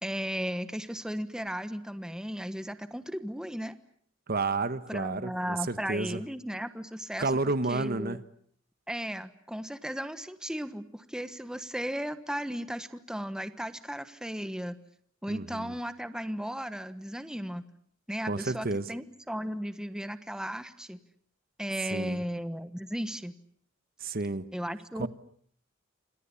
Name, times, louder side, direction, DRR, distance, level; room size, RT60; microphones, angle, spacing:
voice 1, 0.0-3.7 4.9-7.3 7.7-8.2 8.9-14.8 15.2-17.6 18.1-21.0 21.6-23.3 24.5-25.1, equal, 5° right, 11 dB, 1.3 m, -35 dB
voice 2, 4.3-6.2 7.2-8.2 15.3-15.7 18.3-18.8 21.9-22.2 24.0-24.5 25.0-25.1, right 3 dB, 50° right, 12 dB, 1.3 m, -31 dB
28.5 x 27.0 x 7.1 m, 0.62 s
head